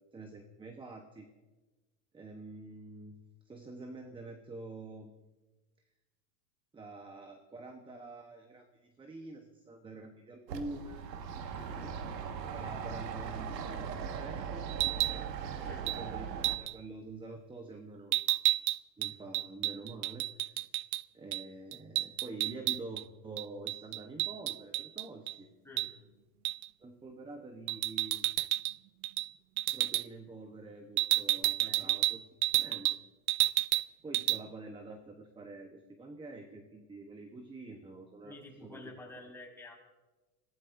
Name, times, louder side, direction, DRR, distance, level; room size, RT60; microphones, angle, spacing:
voice 1, 0.1-1.3 2.1-3.2 3.4-5.1 6.7-11.0 12.5-14.7 15.7-18.2 19.0-20.6 21.1-25.5 26.8-28.3 29.7-32.2 32.6-33.0 34.0-38.8, right 2 dB, 10° right, 5 dB, 0.9 m, -47 dB
sound 1, 10.5-16.6, right 6 dB, 90° right, 1.6 m, -39 dB
voice 2, 11.5-12.0 15.6-15.9 25.6-25.9 31.4-31.9 38.2-39.7, left 2 dB, 5° left, -1 dB, 4.1 m, -50 dB
sound 2, 14.7-15.2 15.9-16.0 16.4-16.7 18.1-21.0 21.3-21.4 21.7-23.0 23.4-25.3 25.8-25.9 26.4-26.7 27.7-28.8 29.0-29.3 29.6-30.0 31.0-33.0 33.3-33.9 34.1-34.4, right 18 dB, 60° right, 0.6 m, -30 dB
26.0 x 17.0 x 2.6 m, 1.2 s
supercardioid pair, 120°, 49 cm